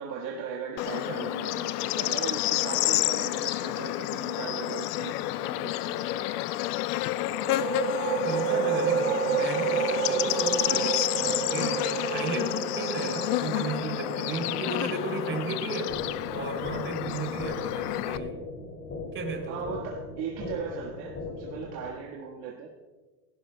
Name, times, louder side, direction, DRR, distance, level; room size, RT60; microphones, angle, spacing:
voice 1, 0.0-6.5 19.5-22.8, right 6 dB, 50° right, -2 dB, 1.7 m, -38 dB
Bird / Insect, 0.8-18.2, left 16 dB, 75° left, 0.6 m, -30 dB
sound 1, 7.3-16.7, right 7 dB, 70° right, 1.4 m, -31 dB
voice 2, 8.2-18.3 19.1-19.7, right 4 dB, 25° right, 2 dB, 3.3 m, -35 dB
sound 2, 15.9-21.9, left 3 dB, 35° left, 2.9 m, -39 dB
17.0 x 16.5 x 2.3 m, 1.3 s
supercardioid pair, 120°, 46 cm